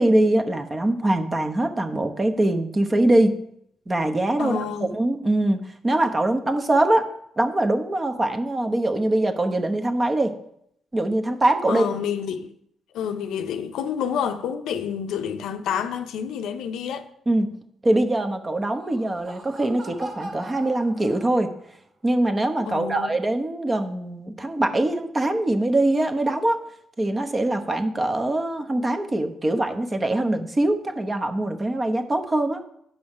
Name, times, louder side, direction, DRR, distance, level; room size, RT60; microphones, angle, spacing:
voice 1, 0.0-3.4 3.9-7.1 7.4-10.3 10.9-11.9 17.3-17.5 17.8-21.5 22.0-26.6 27.0-32.6, right 1 dB, 25° right, 1.0 m, -23 dB
voice 2, 4.4-4.9 11.7-12.5 12.9-17.1 22.7-23.1, left 8 dB, 80° left, 0.7 m, -28 dB
Laughter, 18.5-21.7, right 1 dB, 55° right, 2.2 m, -41 dB
8.8 x 5.6 x 5.5 m
cardioid pair, 90°, 0 cm